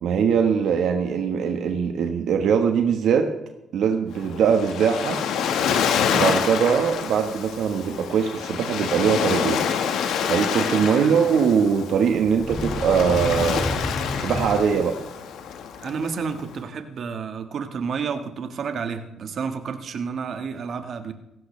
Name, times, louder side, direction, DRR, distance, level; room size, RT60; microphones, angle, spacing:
voice 1, 0.0-3.3 3.7-5.2 6.1-9.6 10.3-13.7 14.2-15.0, right 7 dB, 75° right, 5 dB, 1.3 m, -21 dB
Waves surf, 4.1-16.5, left 7 dB, 80° left, 1.5 m, -27 dB
sound 1, 12.3-15.1, left 1 dB, 15° left, 2.4 m, -30 dB
voice 2, 15.8-21.1, right 5 dB, 55° right, 7 dB, 1.5 m, -30 dB
17.5 x 15.5 x 3.3 m, 0.91 s
cardioid pair, 90°, 0 cm